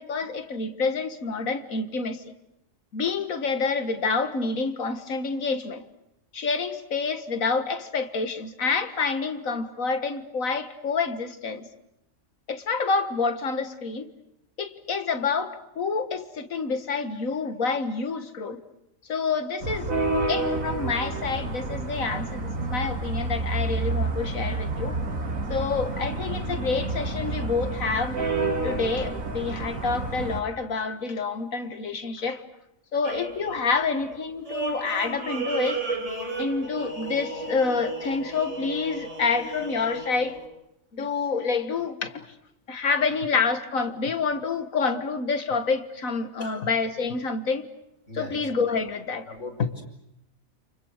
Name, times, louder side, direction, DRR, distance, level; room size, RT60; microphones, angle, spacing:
voice 1, 0.0-2.2 2.9-5.8 6.3-11.7 12.5-14.1 14.6-18.6 19.1-19.9 20.3-25.0 25.5-28.2 28.6-32.4 32.9-36.0 36.4-40.4 40.9-42.3 42.7-47.7 48.1-49.3 49.6-49.7, left 4 dB, 85° left, 2.1 m, -28 dB
sound 1, 19.6-30.4, right 3 dB, 85° right, 2.6 m, -29 dB
sound 2, 33.0-40.5, right 3 dB, 60° right, 4.8 m, -34 dB
voice 2, 48.1-48.4 49.3-49.8, left 2 dB, 60° left, 5.7 m, -38 dB
29.5 x 28.5 x 6.6 m
omnidirectional pair, 1.4 m